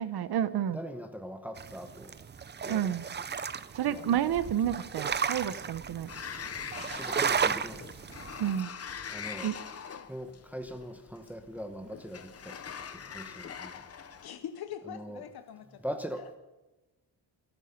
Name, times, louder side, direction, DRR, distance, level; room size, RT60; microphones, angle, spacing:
voice 1, 0.0-0.8 2.7-3.0 3.7-6.1 8.4-8.7 9.4-9.6, right 10 dB, 70° right, 14 dB, 1.0 m, -30 dB
voice 2, 0.7-2.1 2.6-3.0 3.8-4.2 4.7-4.8 6.9-7.8 9.1-9.5 10.1-12.6 13.1-13.8 14.9-15.2 15.8-16.4, equal, 5° right, 6 dB, 1.0 m, -41 dB
sound 1, 1.6-8.6, right 6 dB, 25° right, 0.5 m, -34 dB
Sliding door, 6.1-14.3, left 7 dB, 35° left, 0.8 m, -43 dB
voice 3, 14.2-15.8 16.2-16.3, left 9 dB, 65° left, 9 dB, 0.9 m, -43 dB
25.0 x 9.1 x 5.8 m, 1.1 s
wide cardioid pair, 175°, 40 cm